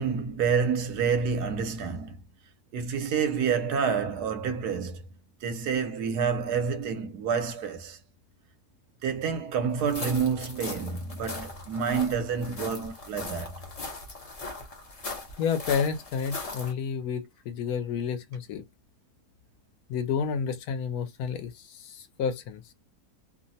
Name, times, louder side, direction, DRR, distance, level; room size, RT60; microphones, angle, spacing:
voice 1, 0.0-2.2 2.7-5.0 5.4-8.0 9.0-13.6, right 6 dB, 80° right, 1.2 m, -28 dB
sound 1, 9.8-16.7, left 3 dB, 40° left, 0.5 m, -39 dB
voice 2, 15.4-18.6 19.9-22.6, left 6 dB, 75° left, 1.0 m, -30 dB
2.9 x 2.1 x 2.6 m
omnidirectional pair, 1.7 m